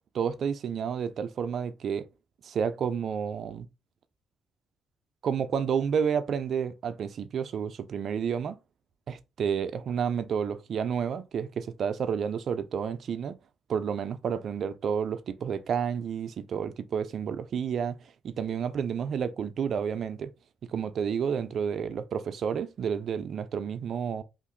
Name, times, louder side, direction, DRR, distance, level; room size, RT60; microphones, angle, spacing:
voice 1, 0.1-2.0 2.4-3.7 5.2-8.6 9.1-13.3 13.7-18.0 18.2-20.3 20.7-24.2, right 7 dB, 60° right, 0.4 m, -30 dB
2.8 x 2.5 x 3.7 m
cardioid pair, 90°, 0 cm